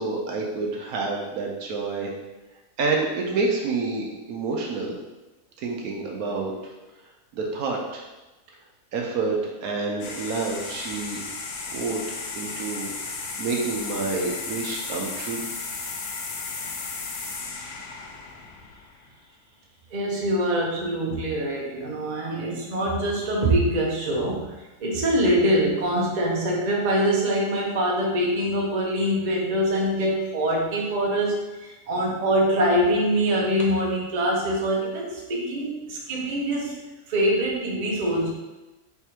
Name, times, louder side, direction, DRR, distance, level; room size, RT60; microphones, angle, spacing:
voice 1, 0.0-2.2 2.8-4.9 5.6-6.7 7.3-8.0 8.9-11.2 11.7-15.4, right 3 dB, 75° right, 0 dB, 1.1 m, -28 dB
sound 1, 10.0-19.2, left 4 dB, 80° left, 1.2 m, -34 dB
voice 2, 19.9-24.5 24.8-36.7 37.1-38.3, right 1 dB, 40° right, -2 dB, 0.7 m, -24 dB
3.5 x 3.3 x 4.4 m, 1.1 s
omnidirectional pair, 1.7 m